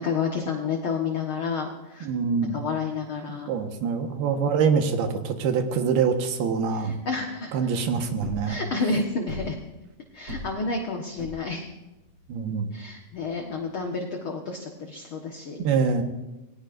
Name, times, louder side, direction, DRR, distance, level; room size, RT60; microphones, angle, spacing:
voice 1, 0.0-2.1 2.5-3.5 6.8-7.5 8.5-9.6 10.1-11.7 12.7-15.6, left 4 dB, 55° left, 1 dB, 1.4 m, -30 dB
voice 2, 2.0-2.6 3.3-6.9 7.5-8.6 12.3-12.7 15.6-16.0, right 6 dB, 90° right, 5 dB, 3.3 m, -25 dB
sound 1, 8.2-13.8, equal, 35° right, 5.5 m, -40 dB
27.5 x 19.0 x 2.6 m, 1.0 s
omnidirectional pair, 4.3 m